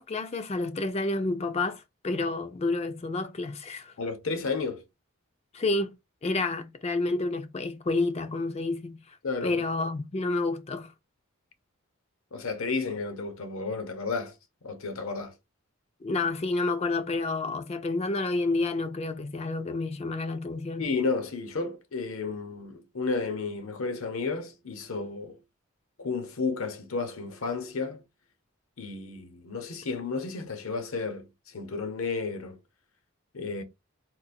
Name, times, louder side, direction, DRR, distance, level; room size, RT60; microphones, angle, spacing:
voice 1, 0.0-3.9 5.5-5.9 6.2-10.9 16.0-20.9, left 3 dB, 30° left, 0.4 m, -29 dB
voice 2, 4.0-4.8 9.2-9.6 12.3-14.3 14.6-15.3 20.8-25.4 26.0-28.0 28.8-32.6 33.3-33.6, left 4 dB, 75° left, 0.8 m, -32 dB
3.8 x 2.5 x 2.5 m
head